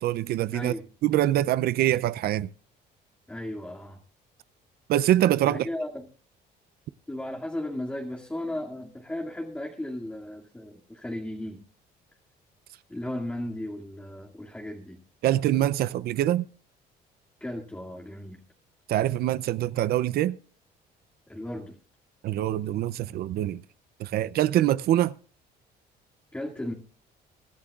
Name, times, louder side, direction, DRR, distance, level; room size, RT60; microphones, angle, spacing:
voice 1, 0.0-0.7 1.0-2.5 4.9-5.7 15.2-16.5 18.9-20.4 22.2-23.6 24.0-25.1, right 13 dB, 65° right, 0.5 m, -24 dB
voice 2, 0.5-0.9 3.3-4.0 5.4-6.1 7.1-11.6 12.9-15.0 17.4-18.4 21.3-21.8 26.3-26.7, left 1 dB, 10° left, 2.0 m, -35 dB
24.0 x 11.5 x 2.4 m
cardioid pair, 110°, 17 cm